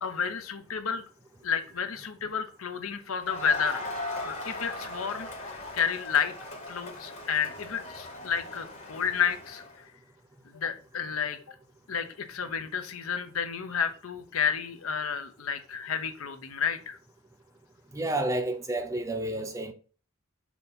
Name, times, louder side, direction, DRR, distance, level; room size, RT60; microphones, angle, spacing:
voice 1, 0.0-1.0 1.4-3.8 4.2-6.3 6.7-9.6 10.5-11.5 11.9-17.0, left 7 dB, 80° left, 0.8 m, -31 dB
Crowd, 3.2-9.8, left 2 dB, 35° left, 1.6 m, -39 dB
voice 2, 17.9-19.7, right 1 dB, 15° right, 0.5 m, -30 dB
6.1 x 2.9 x 5.3 m
head